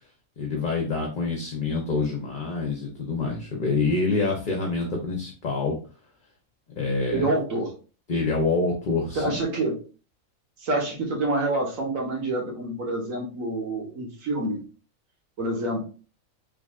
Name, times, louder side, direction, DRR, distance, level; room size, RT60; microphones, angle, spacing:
voice 1, 0.4-5.8 6.8-7.3 8.1-9.4, left 3 dB, 45° left, 1 dB, 0.7 m, -26 dB
voice 2, 7.1-7.7 9.1-9.8 10.6-14.6 15.4-15.8, right 2 dB, 70° right, -1 dB, 1.6 m, -27 dB
3.9 x 3.2 x 2.3 m, 0.36 s
omnidirectional pair, 1.5 m